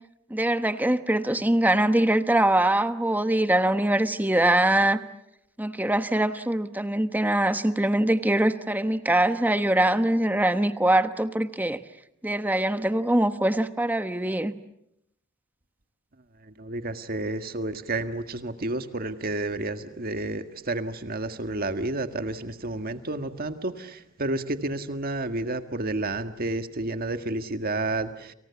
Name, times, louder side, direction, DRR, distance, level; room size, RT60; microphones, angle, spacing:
voice 1, 0.3-5.0 5.6-11.8 12.2-14.5, right 1 dB, 10° right, 10 dB, 1.1 m, -23 dB
voice 2, 16.6-28.3, right 2 dB, 45° right, 8 dB, 1.7 m, -30 dB
30.0 x 27.5 x 7.1 m, 0.78 s
head